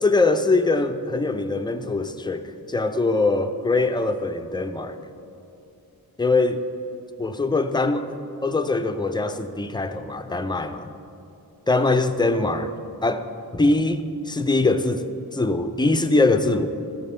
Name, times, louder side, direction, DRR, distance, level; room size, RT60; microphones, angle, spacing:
voice 1, 0.0-5.0 6.2-6.6 7.2-10.8 11.7-12.7 13.0-16.7, left 3 dB, 15° left, 8 dB, 0.3 m, -22 dB
13.5 x 5.2 x 4.2 m, 2.8 s
wide cardioid pair, 110°, 36 cm